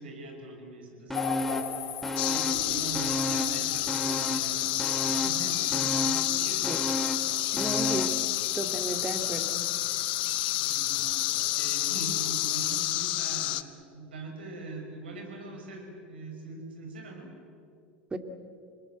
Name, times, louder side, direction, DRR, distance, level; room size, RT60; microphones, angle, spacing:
voice 1, 0.0-6.8 10.6-17.3, right 2 dB, 80° right, 2 dB, 5.8 m, -42 dB
sound 1, 1.1-12.9, left 10 dB, 45° left, 3.8 m, -38 dB
sound 2, 1.1-1.8 2.0-3.6 3.9-8.2 8.6-8.7, equal, 5° left, 2.7 m, -33 dB
sound 3, 2.2-13.6, left 17 dB, 65° left, 1.0 m, -29 dB
voice 2, 7.5-8.2 8.5-9.7 18.1-18.2, right 2 dB, 20° right, 7 dB, 2.3 m, -34 dB
27.5 x 21.0 x 8.1 m, 2.4 s
hypercardioid pair, 85°, 6 cm